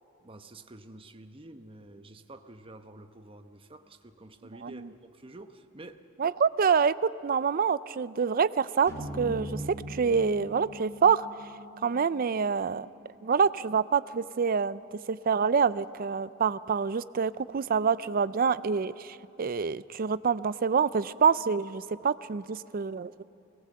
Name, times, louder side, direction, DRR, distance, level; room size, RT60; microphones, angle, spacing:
voice 1, 0.2-6.0, right 2 dB, 25° right, 7 dB, 0.9 m, -49 dB
voice 2, 6.2-6.9 7.2-9.6 9.9-11.3 11.8-12.9 13.2-14.8 15.1-23.2, right 6 dB, 45° right, 16 dB, 0.4 m, -26 dB
sound 1, 8.9-13.2, equal, 15° left, 2.5 m, -41 dB
24.0 x 19.0 x 7.7 m, 2.8 s
head